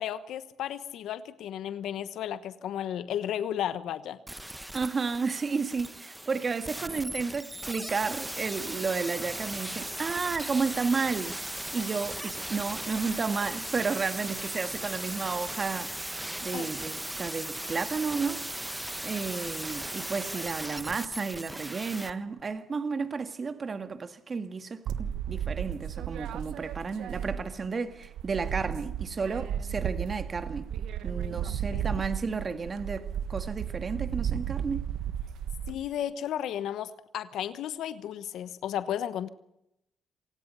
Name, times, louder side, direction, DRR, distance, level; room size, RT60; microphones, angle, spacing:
voice 1, 0.0-4.2 16.5-16.7 31.7-32.0 35.7-39.3, left 10 dB, 80° left, 1.1 m, -34 dB
sound 1, 4.3-22.1 22.4-22.5, right 1 dB, 10° right, 1.0 m, -37 dB
voice 2, 4.7-11.4 11.7-16.0 16.4-18.4 19.0-30.7 31.0-34.9, right 4 dB, 40° right, 1.8 m, -32 dB
sound 2, 24.9-27.7 28.0-35.7, right 9 dB, 80° right, 1.3 m, -34 dB
27.0 x 18.5 x 5.6 m
cardioid pair, 90°, 0 cm